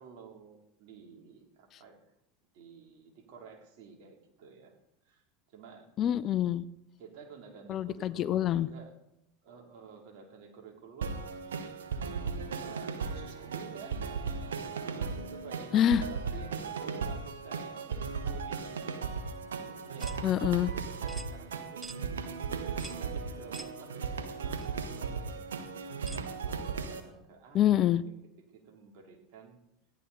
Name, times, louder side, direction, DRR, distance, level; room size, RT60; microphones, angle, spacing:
voice 1, 0.0-2.0 2.5-4.7 5.0-5.9 7.0-8.9 9.4-11.7 12.2-20.3 20.7-21.9 22.5-25.5 26.1-28.2 28.5-29.6, right 5 dB, 60° right, 1 dB, 3.1 m, -52 dB
voice 2, 6.0-6.6 7.7-8.7 15.7-16.0 20.2-20.7 27.5-28.0, left 11 dB, 45° left, 16 dB, 0.6 m, -26 dB
sound 1, 11.0-27.0, right 5 dB, 85° right, 1.3 m, -36 dB
sound 2, 20.0-20.2 21.1-21.3 21.8-22.0 22.8-23.0 23.5-23.7 24.6-24.7 26.1-26.3, right 2 dB, 10° right, 0.6 m, -45 dB
16.5 x 11.5 x 4.0 m, 0.84 s
hypercardioid pair, 90°, 0 cm